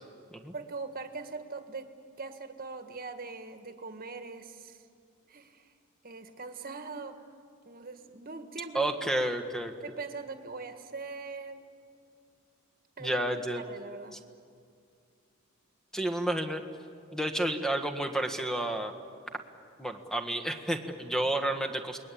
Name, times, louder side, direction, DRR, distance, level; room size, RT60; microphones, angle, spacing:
voice 1, 0.5-1.9 2.2-4.8 5.3-5.7 6.0-7.2 7.6-9.1 9.8-11.6 13.0-14.2, right 4 dB, 40° right, 7 dB, 1.7 m, -41 dB
voice 2, 8.7-9.7 13.0-13.7 15.9-16.6 17.1-18.9 19.8-22.0, right 1 dB, 5° left, 6 dB, 1.5 m, -30 dB
29.0 x 21.0 x 8.6 m, 2.3 s
head